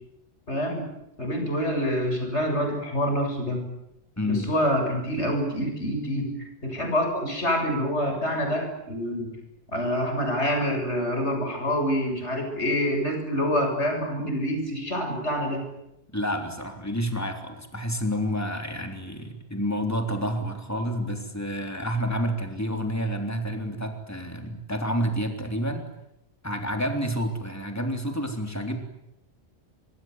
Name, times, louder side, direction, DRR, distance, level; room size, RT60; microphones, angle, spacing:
voice 1, 0.5-0.9 1.2-3.7 4.2-6.3 6.6-9.3 9.7-15.6, equal, 85° left, 4 dB, 7.7 m, -26 dB
voice 2, 4.2-4.5 16.1-25.9 26.4-28.8, equal, 15° left, 4 dB, 3.6 m, -29 dB
25.0 x 23.0 x 9.6 m, 0.84 s
omnidirectional pair, 1.1 m